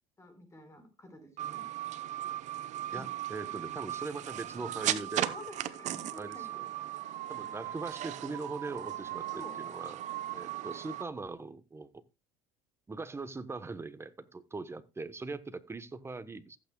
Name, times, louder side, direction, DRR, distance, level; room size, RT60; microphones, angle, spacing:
voice 1, 0.2-1.7 2.9-3.1 5.3-6.6 9.3-9.6, left 1 dB, 20° left, 7 dB, 4.8 m, -50 dB
sound 1, 1.4-11.0, right 12 dB, 55° right, 0.9 m, -37 dB
voice 2, 2.9-5.4 6.2-6.6 7.3-10.0 10.3-12.0 12.9-16.6, right 3 dB, 15° right, 13 dB, 1.0 m, -41 dB
16.0 x 8.5 x 2.3 m, 0.28 s
supercardioid pair, 90°, 14 cm